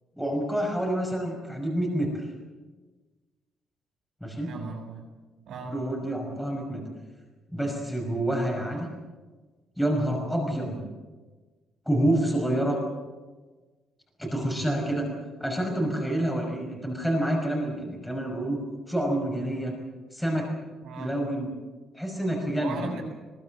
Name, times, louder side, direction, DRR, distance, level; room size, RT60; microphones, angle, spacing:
voice 1, 0.2-2.3 4.2-4.5 5.7-6.8 7.5-8.9 9.8-10.8 11.9-12.8 14.2-15.1 15.4-18.6 18.9-19.7 20.1-20.5 21.0-21.5 21.9-22.8, right 1 dB, ahead, 0 dB, 5.6 m, -28 dB
voice 2, 4.4-5.1 5.5-5.8 20.8-21.2 22.6-23.0, right 4 dB, 70° right, -7 dB, 6.8 m, -37 dB
22.0 x 21.5 x 7.7 m, 1.3 s
cardioid pair, 135°, 0 cm